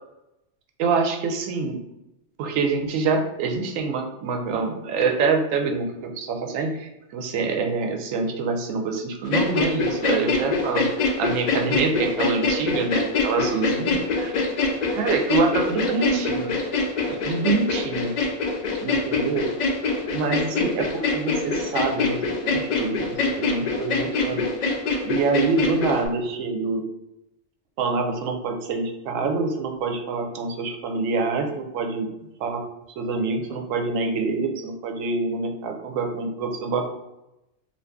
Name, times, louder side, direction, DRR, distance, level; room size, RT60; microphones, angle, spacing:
voice 1, 0.8-1.8 2.4-10.9 11.2-14.3 14.9-16.5 17.1-18.1 18.8-19.5 20.1-24.4 25.0-26.8 27.8-32.1 32.4-32.6 32.9-36.9, right 4 dB, 85° right, 3 dB, 0.9 m, -26 dB
sound 1, 9.2-26.1, left 3 dB, 85° left, 0.3 m, -24 dB
2.6 x 2.4 x 3.4 m, 0.90 s
omnidirectional pair, 1.3 m